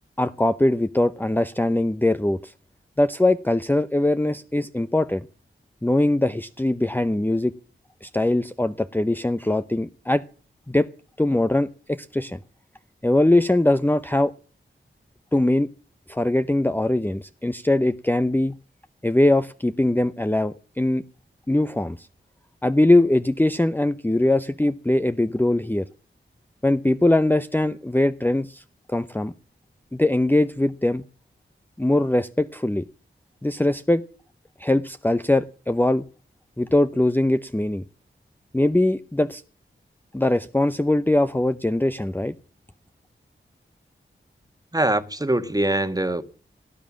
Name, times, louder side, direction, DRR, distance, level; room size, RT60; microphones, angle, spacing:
voice 1, 0.2-2.5 3.0-5.3 5.8-7.5 8.0-10.2 10.7-10.9 11.2-12.4 13.0-14.3 15.3-15.7 16.1-18.6 19.0-21.0 21.5-22.1 22.6-25.9 26.6-28.6 28.9-29.3 29.9-31.0 31.8-32.9 33.4-34.0 34.6-36.0 36.6-37.8 38.5-39.4 40.1-42.3, left 1 dB, 10° left, 0.7 m, -21 dB
voice 2, 44.7-46.2, right 1 dB, 15° right, 1.6 m, -23 dB
18.0 x 9.3 x 7.4 m
cardioid pair, 45°, 21 cm